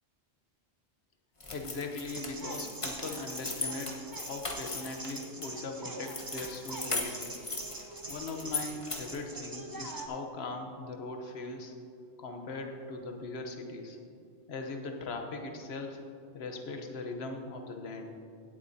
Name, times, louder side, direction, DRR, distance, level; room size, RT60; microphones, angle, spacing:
sound 1, 1.4-5.5 6.0-9.2, left 3 dB, 30° left, 1.2 m, -38 dB
voice 1, 1.5-7.4 8.1-11.7 12.2-14.0 14.5-16.0 16.3-18.1, left 3 dB, 70° left, 4 dB, 1.2 m, -40 dB
sound 2, 2.1-10.1, right 2 dB, 20° right, 0.7 m, -44 dB
16.5 x 8.2 x 2.7 m, 2.5 s
omnidirectional pair, 1.2 m